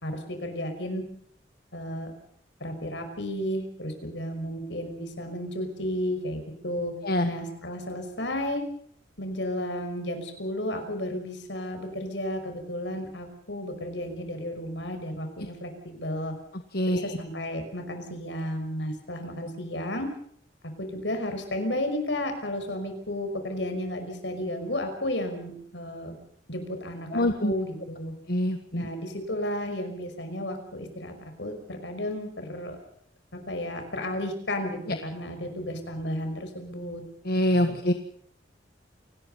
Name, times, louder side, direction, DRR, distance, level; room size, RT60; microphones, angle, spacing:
voice 1, 0.0-1.0 1.7-2.1 2.6-6.9 7.3-8.6 9.2-16.3 16.9-20.1 20.8-26.2 26.5-28.1 28.7-32.8 33.5-37.0 37.8-37.9, left 1 dB, 75° left, 6 dB, 5.6 m, -33 dB
voice 2, 16.7-17.1 27.1-27.5 28.3-28.9 37.2-37.9, left 1 dB, 55° left, 7 dB, 1.5 m, -24 dB
28.5 x 19.5 x 5.6 m, 0.62 s
head